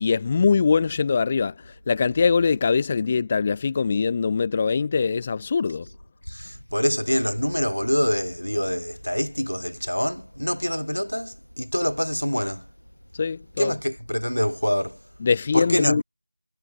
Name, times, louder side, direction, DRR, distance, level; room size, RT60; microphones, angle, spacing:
voice 1, 0.0-5.9 13.1-13.7 15.2-16.0, left 5 dB, 15° left, 0.6 m, -22 dB
voice 2, 6.3-12.7 13.6-15.0 15.5-16.0, equal, 85° left, 1.4 m, -25 dB
figure-of-eight pair, 175°, 0 cm